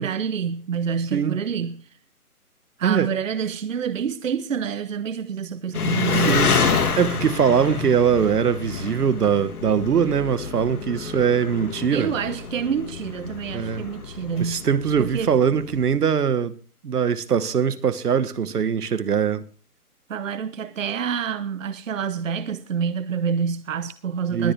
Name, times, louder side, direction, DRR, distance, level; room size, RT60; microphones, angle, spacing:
voice 1, 0.0-1.9 2.8-6.6 11.9-14.7 15.0-15.3 20.1-24.5, right 7 dB, 55° right, 0.9 m, -27 dB
Engine, 5.7-15.9, left 5 dB, 75° left, 2.7 m, -28 dB
voice 2, 6.3-6.6 7.0-12.1 13.5-13.9 14.4-16.5 16.8-19.5 24.3-24.5, right 7 dB, 80° right, 1.3 m, -22 dB
21.0 x 9.1 x 3.3 m
hypercardioid pair, 175°, 45 cm